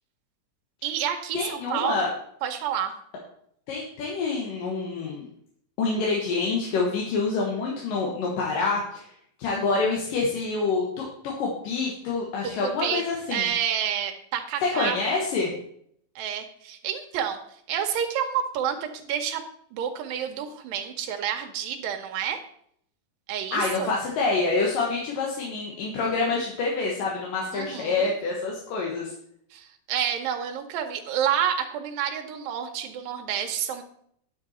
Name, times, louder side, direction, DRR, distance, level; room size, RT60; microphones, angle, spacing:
voice 1, 0.8-2.1 2.4-2.9 12.4-13.1 13.3-15.0 16.2-17.4 17.7-19.4 19.7-22.4 23.3-23.9 27.5-28.1 29.5-33.8, right 9 dB, 85° right, 5 dB, 2.6 m, -29 dB
voice 2, 1.3-2.1 3.7-5.3 5.8-9.1 9.4-13.5 14.7-15.5 23.5-29.1, left 4 dB, 75° left, -3 dB, 3.0 m, -27 dB
10.0 x 7.7 x 4.3 m, 0.67 s
omnidirectional pair, 3.9 m